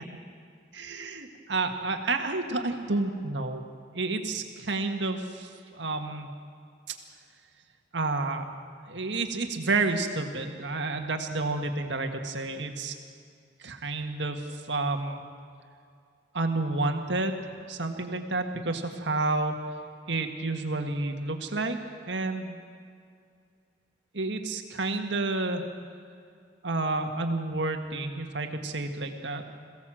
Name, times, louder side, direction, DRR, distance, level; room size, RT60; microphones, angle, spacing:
voice 1, 0.7-3.6 3.9-6.3 7.9-8.4 8.9-12.9 13.6-15.2 16.3-19.6 20.1-21.8 22.1-22.6 24.1-25.6 26.6-29.4, right 3 dB, 70° right, 5 dB, 1.8 m, -30 dB
22.5 x 16.0 x 7.7 m, 2.3 s
head